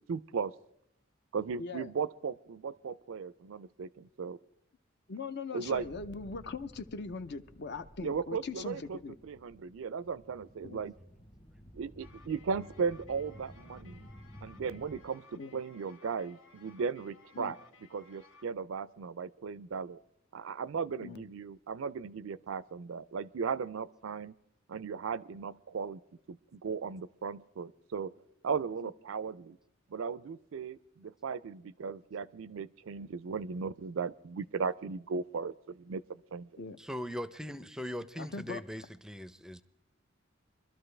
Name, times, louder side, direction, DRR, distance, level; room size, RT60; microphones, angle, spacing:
voice 1, 0.1-0.5 1.3-4.4 5.5-5.9 8.0-10.9 11.7-14.1 14.4-17.6 17.9-20.0 20.3-24.3 24.7-26.0 26.3-28.1 28.4-29.6 29.9-36.6, right 5 dB, 70° right, 18 dB, 0.4 m, -37 dB
voice 2, 1.6-1.9 5.1-9.2 10.6-10.8 15.4-15.6 17.3-17.5 21.0-21.2 28.8-28.9 36.6-36.8 38.1-38.6, left 4 dB, 55° left, 11 dB, 0.6 m, -41 dB
sound 1, 5.6-15.0, equal, 25° left, 1.0 m, -54 dB
sound 2, 12.0-18.4, left 5 dB, 80° left, 1.9 m, -60 dB
voice 3, 36.8-39.6, equal, 5° right, 13 dB, 0.5 m, -40 dB
23.0 x 13.0 x 3.3 m, 0.73 s
head